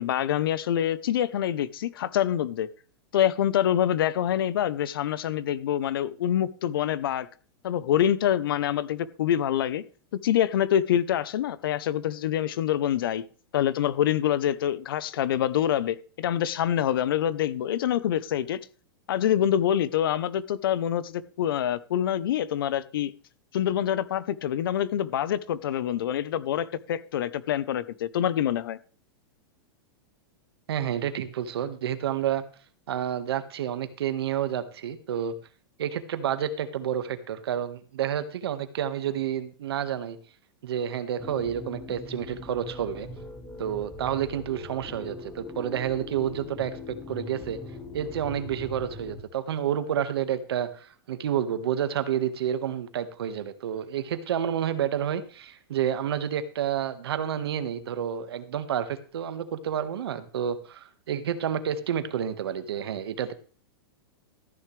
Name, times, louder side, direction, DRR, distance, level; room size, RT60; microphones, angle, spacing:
voice 1, 0.0-2.7 3.1-7.3 7.6-9.8 10.1-13.2 13.5-18.6 19.1-23.1 23.5-28.8, left 10 dB, 65° left, 18 dB, 0.8 m, -26 dB
voice 2, 30.7-32.4 32.9-35.3 35.8-40.2 40.6-43.1 43.6-47.6 47.9-63.3, right 9 dB, 80° right, 10 dB, 1.6 m, -29 dB
sound 1, 41.2-49.2, left 2 dB, 10° left, 1.3 m, -41 dB
14.0 x 10.0 x 3.3 m, 0.40 s
supercardioid pair, 180°, 13 cm